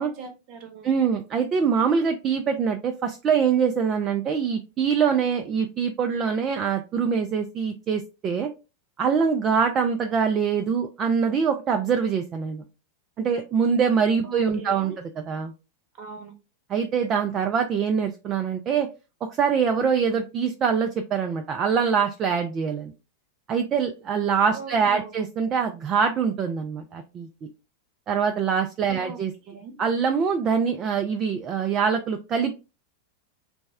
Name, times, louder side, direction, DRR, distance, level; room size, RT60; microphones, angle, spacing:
voice 1, 0.0-0.9 14.2-15.0 15.9-16.3 24.5-25.2 29.0-29.2 29.4-29.8, right 5 dB, 45° right, 5 dB, 0.8 m, -40 dB
voice 2, 0.8-8.5 9.0-12.6 13.2-14.9 15.3-15.5 16.7-18.9 19.4-22.9 23.5-27.3 28.1-29.3 29.8-32.5, right 6 dB, 30° right, 5 dB, 0.3 m, -24 dB
3.4 x 2.1 x 3.3 m, 0.30 s
figure-of-eight pair, 90°, 0 cm